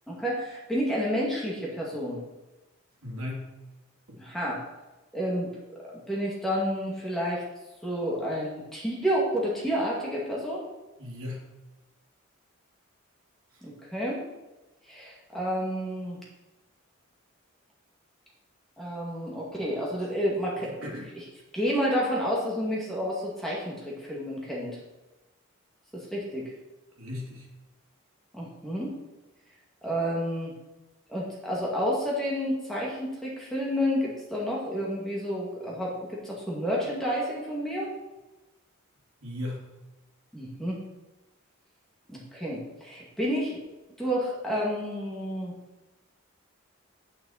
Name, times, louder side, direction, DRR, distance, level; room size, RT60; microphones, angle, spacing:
voice 1, 0.1-2.2 4.2-4.6 5.1-5.5 6.1-7.4 7.8-10.6 13.6-14.2 14.9-16.2 18.8-21.2 21.5-24.8 25.9-26.4 28.3-28.9 29.8-30.5 31.1-37.9 40.3-40.8 42.1-43.6 44.0-45.5, equal, ahead, -5 dB, 2.3 m, -30 dB
voice 2, 3.0-3.5 4.1-4.2 11.0-11.4 13.5-13.6 20.6-21.1 27.0-27.5 39.2-39.6, left 1 dB, 85° right, -2 dB, 2.7 m, -37 dB
9.2 x 8.7 x 4.3 m, 1.1 s
head